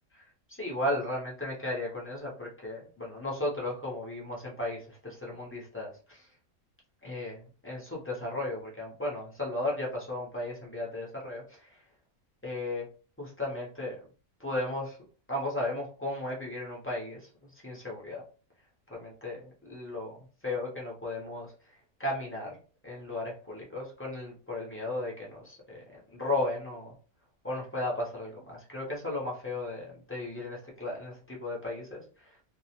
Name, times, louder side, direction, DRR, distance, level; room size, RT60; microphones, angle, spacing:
voice 1, 0.1-6.3 7.0-11.8 12.4-12.9 13.2-14.0 14.4-15.0 15.3-18.2 18.9-22.6 22.8-26.9 27.4-32.4, left 1 dB, 20° left, -4 dB, 0.3 m, -35 dB
2.3 x 2.1 x 2.8 m, 0.38 s
omnidirectional pair, 1.5 m